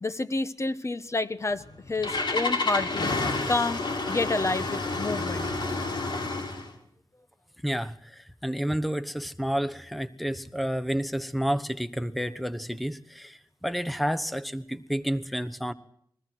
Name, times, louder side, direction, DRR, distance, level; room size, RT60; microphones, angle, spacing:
voice 1, 0.0-3.1 3.5-3.8 4.1-5.5 6.3-6.4, left 3 dB, 35° left, 12 dB, 1.1 m, -29 dB
Engine starting, 1.5-6.7, left 3 dB, 65° left, 6.4 m, -29 dB
voice 2, 7.6-15.7, equal, ahead, 12 dB, 1.2 m, -30 dB
29.5 x 22.0 x 4.7 m, 0.65 s
wide cardioid pair, 115°, 8 cm